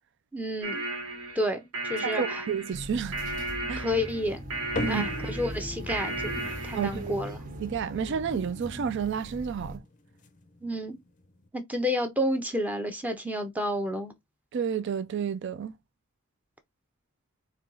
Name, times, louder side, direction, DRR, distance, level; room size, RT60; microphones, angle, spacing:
voice 1, 0.3-0.8 1.3-2.4 3.8-4.4 4.8-7.4 10.6-11.0 11.5-14.1, left 1 dB, 5° right, 0.6 m, -30 dB
sound 1, 0.6-7.1, right 2 dB, 80° right, 1.2 m, -35 dB
voice 2, 2.0-3.2 3.7-3.9 4.8-5.1 6.7-7.1 7.6-9.8 14.5-15.7, right 7 dB, 55° right, 0.3 m, -30 dB
sound 2, 2.7-9.8, right 1 dB, 40° right, 0.8 m, -40 dB
sound 3, 4.8-11.5, left 2 dB, 35° left, 0.5 m, -42 dB
4.3 x 2.3 x 3.8 m
head